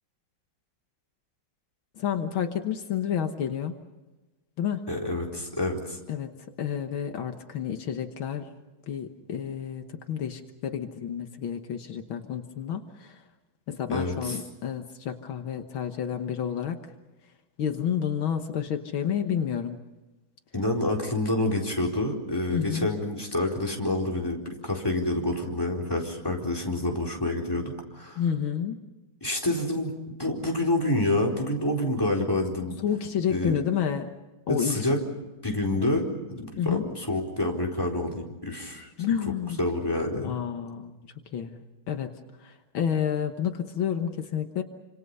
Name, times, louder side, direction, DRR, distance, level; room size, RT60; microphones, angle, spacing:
voice 1, 2.0-3.8 4.6-4.9 6.1-6.3 6.6-8.5 8.9-13.2 13.7-16.8 17.6-19.8 22.5-22.9 28.2-28.8 32.8-34.1 34.5-34.8 36.6-36.9 39.0-39.6 40.2-41.0 41.3-41.6 41.9-44.6, left 8 dB, 75° left, 6 dB, 2.1 m, -30 dB
voice 2, 4.9-6.0 13.9-14.4 20.5-28.2 29.2-29.9 30.2-32.8 33.3-33.6 34.5-35.0 35.4-38.9 39.6-40.4, left 1 dB, 10° left, 2 dB, 4.2 m, -28 dB
28.5 x 26.5 x 5.5 m, 1.1 s
omnidirectional pair, 2.3 m